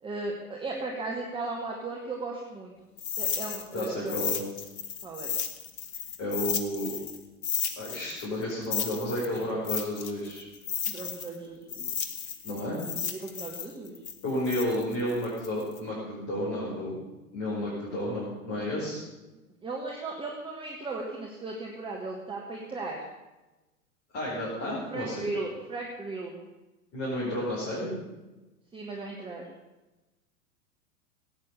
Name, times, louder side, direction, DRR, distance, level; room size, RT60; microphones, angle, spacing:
voice 1, 0.0-2.7 3.2-4.2 5.0-5.3 9.3-9.6 10.9-11.9 12.5-12.6 12.9-14.0 17.5-17.8 19.6-23.0 24.7-26.4 28.7-29.5, right 3 dB, 10° right, 0 dB, 1.5 m, -37 dB
sound 1, 3.0-7.2 7.4-11.4 11.7-15.8, left 7 dB, 45° left, 1.6 m, -33 dB
voice 2, 3.7-4.4 6.2-6.9 7.8-10.4 12.4-12.8 14.2-17.0 17.3-19.0 24.1-25.3 26.9-28.0, left 1 dB, 30° left, -6 dB, 4.8 m, -31 dB
16.5 x 9.3 x 6.8 m, 1.1 s
figure-of-eight pair, 100°, 45 cm